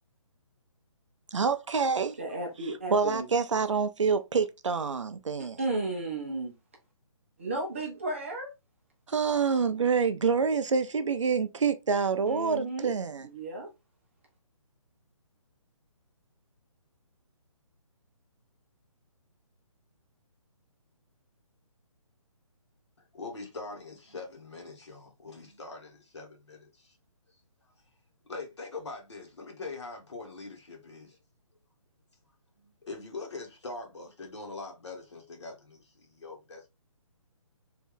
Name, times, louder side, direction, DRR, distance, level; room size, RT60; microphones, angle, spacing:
voice 1, 1.3-2.2 2.9-5.6 9.1-13.3, right 5 dB, 60° right, 0.5 m, -27 dB
voice 2, 2.2-3.3 5.4-6.5 7.4-8.5 12.3-12.9 13.2-13.7, right 2 dB, 25° right, 0.7 m, -34 dB
voice 3, 23.1-27.0 28.3-31.2 32.5-36.7, left 3 dB, 55° left, 1.3 m, -43 dB
3.3 x 2.6 x 3.6 m
hypercardioid pair, 180°, 18 cm